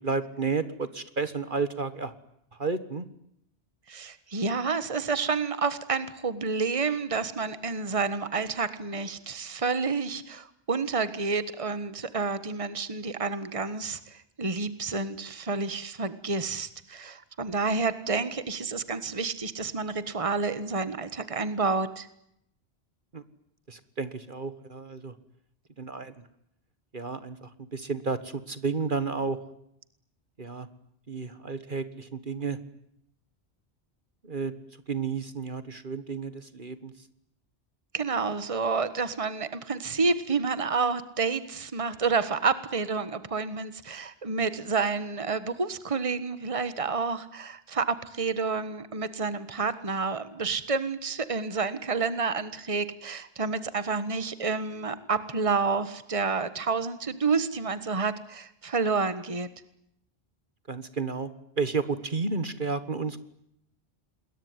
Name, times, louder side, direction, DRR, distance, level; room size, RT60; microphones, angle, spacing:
voice 1, 0.0-2.1 2.5-3.1 23.1-23.2 23.7-25.1 25.8-26.2 26.9-29.4 30.4-30.7 31.1-32.6 34.2-34.6 34.9-37.1 60.7-61.3 61.6-63.2, right 4 dB, 50° right, 13 dB, 1.7 m, -32 dB
voice 2, 3.9-22.1 37.9-59.5, right 4 dB, 30° right, 13 dB, 1.6 m, -29 dB
27.5 x 22.0 x 9.7 m, 0.76 s
omnidirectional pair, 1.1 m